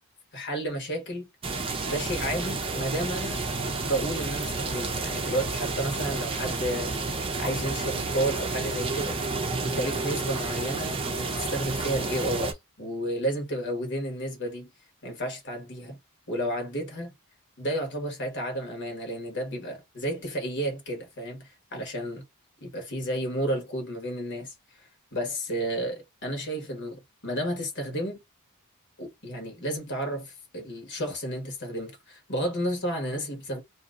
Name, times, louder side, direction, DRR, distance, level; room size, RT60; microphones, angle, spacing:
voice 1, 0.3-1.3 1.9-3.4 3.8-9.2 9.6-14.7 15.0-16.0 16.3-17.1 17.6-22.2 22.6-28.2 29.0-33.6, right 1 dB, 50° left, 1.4 m, -32 dB
sound 1, 1.4-12.5, right 3 dB, 25° right, 0.6 m, -30 dB
2.9 x 2.8 x 2.5 m
head